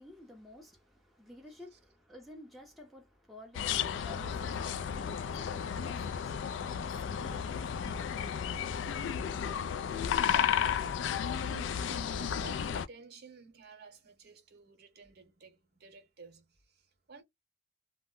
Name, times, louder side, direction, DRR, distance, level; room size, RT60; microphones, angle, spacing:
voice 1, 0.0-9.2, left 1 dB, ahead, 0.6 m, -54 dB
sound 1, 3.5-12.9, left 8 dB, 70° left, 0.3 m, -33 dB
voice 2, 10.7-17.2, right 4 dB, 55° right, 0.7 m, -54 dB
2.1 x 2.0 x 3.6 m
head